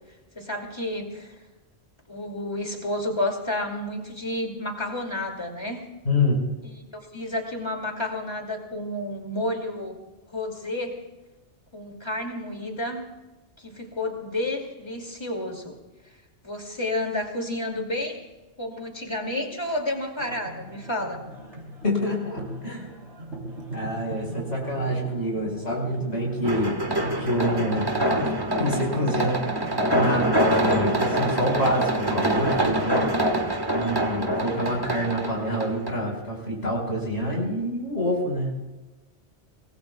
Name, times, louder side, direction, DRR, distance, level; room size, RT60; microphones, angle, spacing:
voice 1, 0.3-1.3 2.1-5.8 6.6-10.0 10.3-11.1 11.7-13.1 13.6-15.8 16.4-18.2 18.6-21.2, left 1 dB, 25° left, 1 dB, 2.7 m, -30 dB
voice 2, 6.1-6.4 21.8-22.9 23.7-26.8 27.2-27.9 28.2-28.3 28.6-33.1 33.7-38.6, left 1 dB, 70° left, -2 dB, 5.2 m, -27 dB
sound 1, 20.2-30.4, equal, 90° right, 3.5 m, -38 dB
sound 2, 26.4-35.9, right 1 dB, 20° right, 1.5 m, -25 dB
25.0 x 20.0 x 2.4 m, 1.1 s
omnidirectional pair, 1.2 m